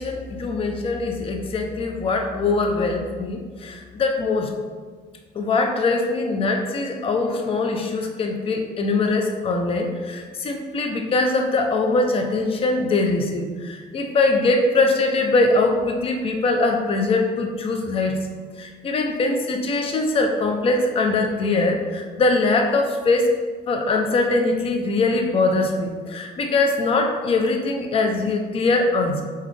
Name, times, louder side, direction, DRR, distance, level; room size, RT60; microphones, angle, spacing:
voice 1, 0.0-4.5 5.4-18.2 18.6-23.3 23.7-29.2, left 3 dB, 35° left, 3 dB, 0.5 m, -22 dB
4.1 x 4.0 x 3.2 m, 1.5 s
cardioid pair, 110°, 17 cm